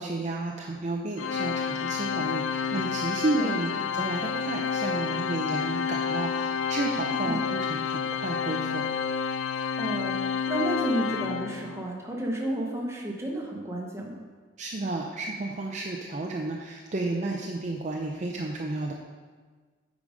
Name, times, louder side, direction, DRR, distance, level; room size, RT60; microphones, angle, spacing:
voice 1, 0.0-8.8 14.6-18.9, right 2 dB, 40° right, 0 dB, 0.5 m, -32 dB
Organ, 1.2-11.9, left 6 dB, 90° left, 0.5 m, -29 dB
voice 2, 3.3-3.8 7.1-7.4 9.8-14.2, right 1 dB, 15° right, -2 dB, 1.2 m, -32 dB
8.6 x 5.1 x 5.1 m, 1.5 s
head